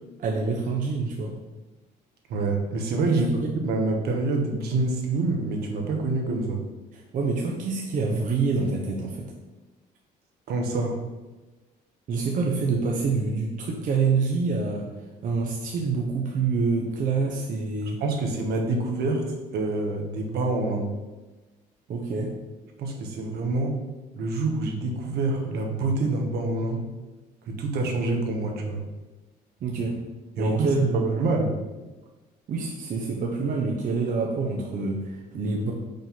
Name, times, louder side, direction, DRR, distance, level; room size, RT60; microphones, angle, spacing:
voice 1, 0.2-1.3 3.1-3.5 6.9-9.2 12.1-14.9 15.2-18.0 21.9-22.3 29.6-30.0 30.4-31.2 32.5-35.7, right 4 dB, 50° right, 0 dB, 0.9 m, -26 dB
voice 2, 2.3-3.3 3.6-6.6 10.5-11.0 18.0-20.9 22.8-23.8 24.1-26.8 27.5-28.8 30.4-30.7 30.9-31.5, right 3 dB, 70° right, 2 dB, 1.2 m, -26 dB
5.3 x 3.8 x 5.7 m, 1.2 s
cardioid pair, 110°, 17 cm